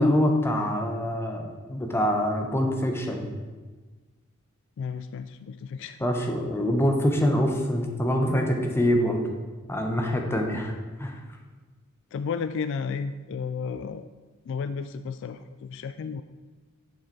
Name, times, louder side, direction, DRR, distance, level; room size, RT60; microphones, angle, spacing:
voice 1, 0.0-3.3 6.0-9.2 9.7-10.7 11.0-11.2, equal, 10° left, 2 dB, 0.9 m, -25 dB
voice 2, 4.8-6.3 12.1-14.1 14.5-16.2, left 5 dB, 60° left, 11 dB, 0.3 m, -33 dB
7.3 x 6.5 x 4.6 m, 1.4 s
head